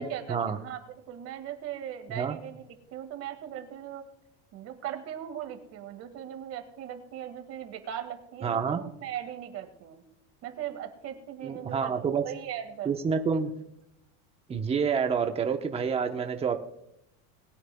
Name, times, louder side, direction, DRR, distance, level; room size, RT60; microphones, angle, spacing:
voice 1, 0.0-4.0 4.5-10.0 10.4-13.3, right 10 dB, 50° right, 7 dB, 2.0 m, -39 dB
voice 2, 8.4-8.8 11.4-12.2 12.9-13.5 14.5-16.6, right 6 dB, 20° right, 5 dB, 1.0 m, -28 dB
21.0 x 9.1 x 2.3 m, 0.81 s
cardioid pair, 145°, 33 cm